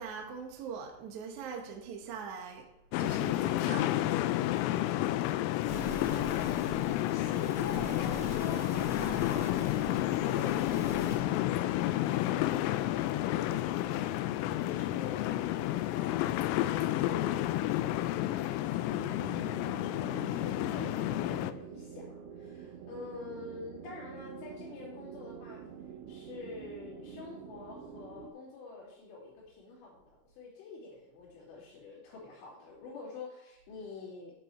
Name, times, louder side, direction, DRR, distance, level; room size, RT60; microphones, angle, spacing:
voice 1, 0.0-2.7 3.0-4.1, right 6 dB, 60° right, 1 dB, 2.0 m, -42 dB
sound 1, 2.9-21.5, left 14 dB, 85° left, 3.2 m, -31 dB
sound 2, 5.7-11.1, equal, 35° left, 1.8 m, -43 dB
voice 2, 6.1-6.8 7.1-11.0 12.0-25.6 26.1-34.3, left 3 dB, 60° left, -9 dB, 4.9 m, -46 dB
sound 3, 18.9-28.3, right 7 dB, 85° right, 2.2 m, -47 dB
11.0 x 7.7 x 4.6 m, 0.85 s
omnidirectional pair, 5.9 m